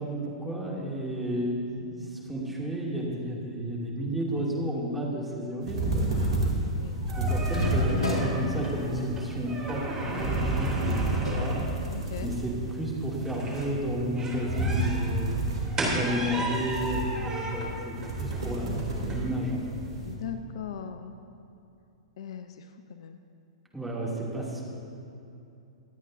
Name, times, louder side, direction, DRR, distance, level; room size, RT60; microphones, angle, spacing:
voice 1, 0.0-6.1 7.2-11.1 11.3-11.6 12.2-15.3 15.8-18.8 19.1-19.6 23.7-24.6, equal, 5° right, -5 dB, 2.7 m, -32 dB
sound 1, 5.6-20.1, right 1 dB, 70° right, 2.8 m, -31 dB
voice 2, 6.1-7.3 8.2-8.5 11.9-12.3 18.0-18.2 20.0-21.1 22.2-23.2, left 8 dB, 60° left, 8 dB, 0.6 m, -41 dB
sound 2, 6.2-20.1, right 1 dB, 20° right, 3.2 m, -36 dB
sound 3, 7.5-12.4 12.8-12.9 13.4-13.8, left 1 dB, 85° left, 1.9 m, -34 dB
24.5 x 9.1 x 2.7 m, 2.7 s
figure-of-eight pair, 105°, 3 cm